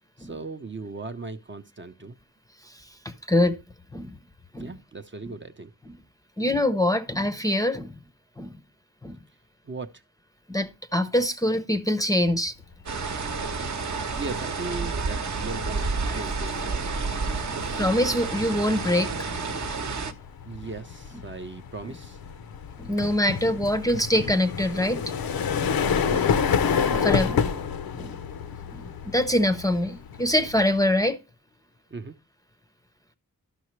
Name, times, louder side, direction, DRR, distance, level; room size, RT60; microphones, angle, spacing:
voice 1, 0.2-2.2 4.6-5.7 9.6-9.9 14.2-16.8 20.5-22.2 26.1-26.3 26.9-27.6 31.9-32.2, right 3 dB, 35° right, 0.6 m, -38 dB
voice 2, 3.0-3.6 3.9-4.2 4.5-4.7 5.9-6.0 6.4-8.0 8.4-8.6 9.0-9.2 10.5-12.5 16.1-16.2 17.8-19.1 22.8-25.1 26.6-26.7 27.0-27.4 28.0-28.2 28.7-31.2, left 1 dB, 10° left, 0.6 m, -24 dB
sound 1, 12.9-20.1, right 4 dB, 50° right, 0.9 m, -30 dB
sound 2, 13.7-14.0 14.3-31.1, left 6 dB, 75° left, 0.7 m, -29 dB
12.0 x 5.7 x 3.1 m
cardioid pair, 75°, 36 cm